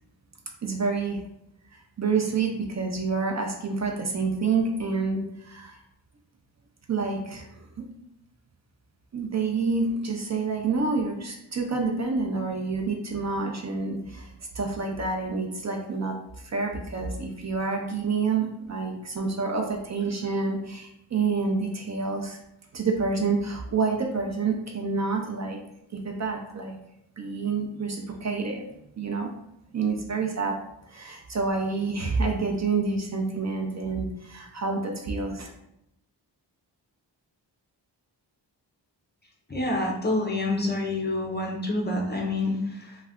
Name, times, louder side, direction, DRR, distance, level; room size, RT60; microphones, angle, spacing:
voice 1, 0.6-1.2 2.0-5.8 6.9-7.5 7.8-7.9 9.1-16.1 16.4-22.4 22.7-25.6 25.9-26.8 27.2-28.6 29.0-29.3 29.7-30.6 30.9-35.5, right 4 dB, 40° right, 2 dB, 0.5 m, -28 dB
voice 2, 39.5-43.0, left 2 dB, 25° left, 0 dB, 0.5 m, -27 dB
2.3 x 2.2 x 3.5 m, 0.80 s
wide cardioid pair, 75°, 43 cm